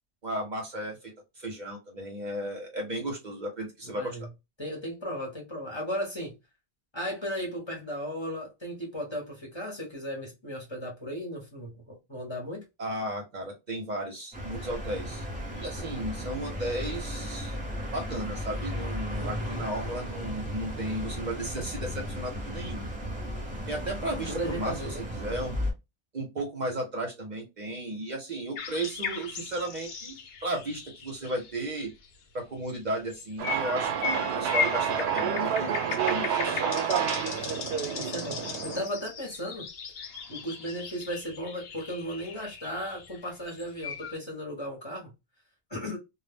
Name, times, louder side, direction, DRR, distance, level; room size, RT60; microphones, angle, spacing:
voice 1, 0.2-4.2 12.8-15.3 15.5-17.6 17.9-22.9 23.7-25.5 26.1-30.1 30.4-31.9 32.3-36.7, right 1 dB, 50° right, 0.7 m, -34 dB
voice 2, 3.8-4.3 4.6-6.4 6.9-12.6 19.2-19.6 24.3-25.1 37.9-39.6 40.3-45.1 45.7-46.0, equal, 30° left, 0.8 m, -36 dB
sound 1, 14.3-25.7, equal, 10° right, 0.6 m, -35 dB
sound 2, 28.6-32.1 32.7-44.1, left 6 dB, 70° left, 0.8 m, -37 dB
sound 3, 33.4-38.8, right 8 dB, 80° right, 0.8 m, -29 dB
2.2 x 2.0 x 3.3 m
omnidirectional pair, 1.1 m